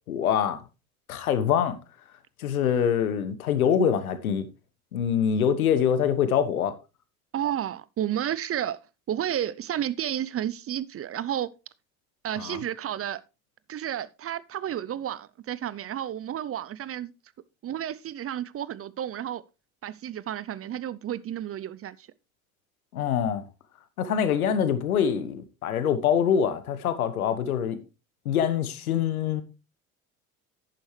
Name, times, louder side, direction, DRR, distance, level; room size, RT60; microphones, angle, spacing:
voice 1, 0.1-0.6 1.1-1.8 2.4-4.5 4.9-6.7 12.4-12.6 22.9-23.4 24.0-27.8 28.2-29.4, left 8 dB, 85° left, 1.3 m, -24 dB
voice 2, 7.3-8.8 9.1-11.5 12.2-13.2 13.7-17.1 17.6-19.4 19.8-22.1, right 11 dB, 35° right, 0.6 m, -31 dB
11.0 x 9.2 x 3.2 m
hypercardioid pair, 65°, 42 cm